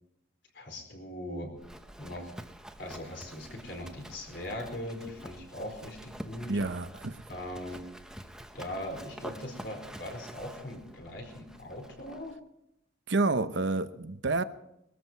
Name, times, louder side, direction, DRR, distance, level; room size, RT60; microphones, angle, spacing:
voice 1, 0.5-1.5 2.0-2.3 2.8-6.5 7.3-7.8 8.5-12.4, left 1 dB, 60° left, 4.5 m, -40 dB
Livestock farm animals working animals, 1.6-12.4, equal, 5° right, 0.9 m, -47 dB
voice 2, 6.5-7.2 13.1-14.4, right 3 dB, 65° right, 0.8 m, -29 dB
21.0 x 13.5 x 4.6 m
head